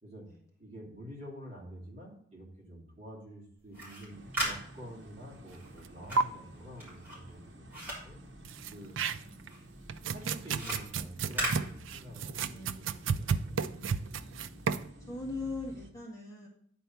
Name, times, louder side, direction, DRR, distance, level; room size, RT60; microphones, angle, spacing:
voice 1, 0.6-8.2 8.7-9.0 10.1-13.6 13.9-14.1, equal, 35° right, -3 dB, 2.8 m, -48 dB
sound 1, 3.6-9.1 9.4-12.4, right 1 dB, 10° right, 3.7 m, -39 dB
sound 2, 4.1-15.9, right 1 dB, 65° right, 1.2 m, -52 dB
sound 3, 5.8-5.9 6.2-6.3 8.4-9.5 9.9-14.9, right 5 dB, 85° right, 0.4 m, -32 dB
voice 2, 8.9-9.4 12.5-13.3 13.6-14.3 15.1-16.5, left 3 dB, 15° left, -4 dB, 1.7 m, -42 dB
10.5 x 4.5 x 5.6 m, 0.64 s
head